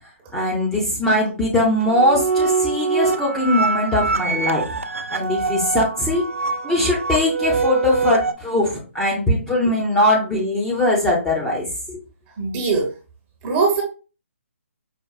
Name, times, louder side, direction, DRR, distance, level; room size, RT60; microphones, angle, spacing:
voice 1, 0.3-4.6 5.1-6.3 6.6-12.0, left 1 dB, 5° left, -4 dB, 0.7 m, -20 dB
sound 1, 1.8-8.3, right 4 dB, 80° right, 0.5 m, -24 dB
voice 2, 12.4-12.9 13.4-13.8, right 4 dB, 20° right, 1 dB, 0.9 m, -20 dB
4.9 x 2.3 x 2.3 m, 0.34 s
figure-of-eight pair, 140°, 7 cm